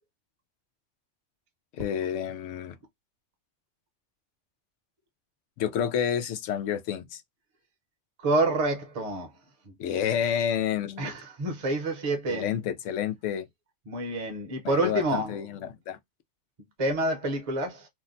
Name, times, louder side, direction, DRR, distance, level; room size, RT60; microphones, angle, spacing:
voice 1, 1.7-2.8 5.6-7.2 9.8-11.1 12.3-13.5 14.6-16.0, left 9 dB, 90° left, 0.9 m, -29 dB
voice 2, 8.2-9.3 11.0-12.5 13.9-15.4 16.8-17.9, right 2 dB, 35° right, 0.8 m, -27 dB
2.7 x 2.1 x 3.7 m
omnidirectional pair, 1.2 m